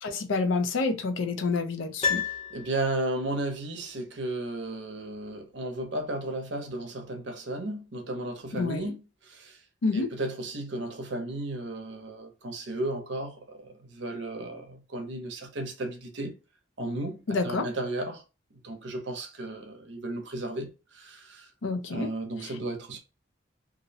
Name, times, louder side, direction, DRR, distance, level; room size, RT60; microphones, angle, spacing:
voice 1, 0.0-2.2 8.6-8.9 9.8-10.1 17.3-17.7 21.6-22.1, left 3 dB, 75° left, 0.5 m, -28 dB
Piano, 2.0-3.3 3.5-3.6, left 6 dB, 30° left, 0.7 m, -31 dB
voice 2, 2.5-9.6 9.9-16.4 16.8-18.2 18.6-21.5 21.9-23.0, right 2 dB, 65° right, 0.6 m, -34 dB
2.5 x 2.0 x 2.6 m
head